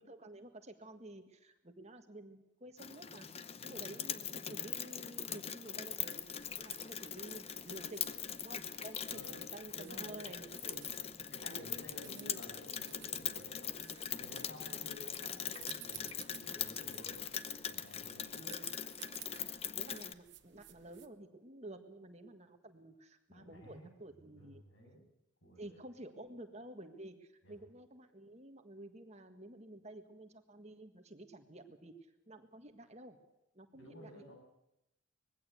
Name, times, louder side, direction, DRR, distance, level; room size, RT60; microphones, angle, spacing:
voice 1, 0.0-3.3 3.6-10.9 12.1-12.4 14.0-14.1 18.3-18.7 19.7-24.6 25.6-31.9 32.3-33.2 33.5-34.3, right 1 dB, 30° right, 7 dB, 1.7 m, -51 dB
Rain, 2.8-20.1, left 9 dB, 30° left, 0.6 m, -42 dB
voice 2, 3.6-3.9 9.1-9.4 9.7-10.3 10.6-10.8 11.3-18.3 23.3-23.9 24.3-25.0 25.4-26.2 27.4-27.6 33.7-34.3, equal, 60° left, 1 dB, 7.6 m, -54 dB
sound 1, 6.2-21.1, right 13 dB, 55° right, 1.2 m, -57 dB
20.5 x 15.5 x 8.1 m, 0.87 s
head